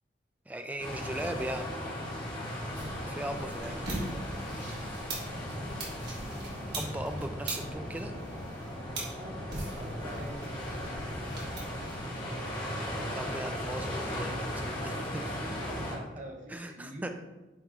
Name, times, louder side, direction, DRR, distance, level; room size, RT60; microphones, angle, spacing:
voice 1, 0.5-1.7 3.1-4.3 6.7-8.1 13.1-14.4 14.8-15.4 16.5-17.1, right 1 dB, 10° right, 6 dB, 0.3 m, -38 dB
sound 1, 0.8-16.0, equal, 25° left, 1.4 m, -37 dB
sound 2, 2.7-12.0, right 2 dB, 65° right, 1.6 m, -42 dB
voice 2, 2.8-3.7 9.2-9.5 9.8-10.5 15.8-17.1, right 1 dB, 45° right, 0 dB, 1.0 m, -45 dB
8.8 x 3.0 x 3.6 m, 1.1 s
head